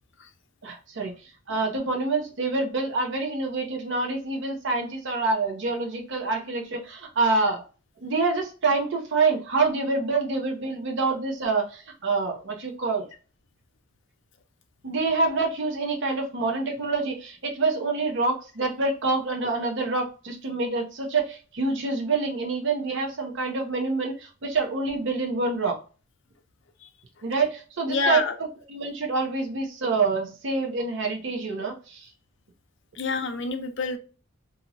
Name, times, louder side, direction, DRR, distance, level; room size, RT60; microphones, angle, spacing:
voice 1, 0.6-7.6 8.0-13.1 14.8-25.8 27.2-32.1, right 3 dB, 60° right, 1 dB, 0.7 m, -26 dB
voice 2, 27.9-28.3 33.0-34.0, left 4 dB, 60° left, 6 dB, 0.6 m, -27 dB
2.9 x 2.7 x 2.6 m, 0.35 s
head